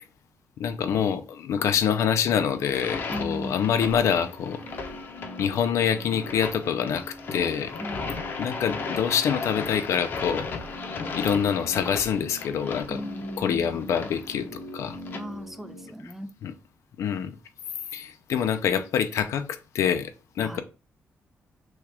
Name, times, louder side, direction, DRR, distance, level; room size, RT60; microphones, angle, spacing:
voice 1, 0.6-4.6 5.4-7.7 8.4-10.5 11.1-13.0 13.4-15.0 16.4-16.5 17.0-17.3 17.9-20.6, left 8 dB, 85° left, 0.6 m, -26 dB
sound 1, 2.5-15.2, left 4 dB, 45° left, 0.7 m, -36 dB
voice 2, 3.1-3.7 7.8-8.1 12.9-14.1 15.1-16.3 20.4-20.6, equal, 5° right, 0.3 m, -37 dB
sound 2, 3.4-15.9, left 1 dB, 60° left, 1.0 m, -44 dB
6.2 x 2.4 x 3.4 m
wide cardioid pair, 180°, 5 cm